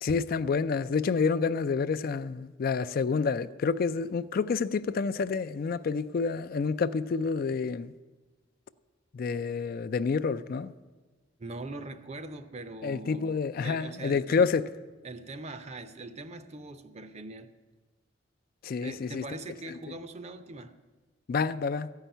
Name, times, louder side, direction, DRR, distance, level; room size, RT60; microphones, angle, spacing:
voice 1, 0.0-7.9 9.1-10.7 12.8-14.6 18.6-19.2 21.3-21.9, left 5 dB, 50° left, 0.3 m, -28 dB
voice 2, 11.4-14.5 15.0-17.6 18.8-20.8, right 2 dB, 35° right, 0.6 m, -42 dB
14.0 x 5.7 x 9.1 m
head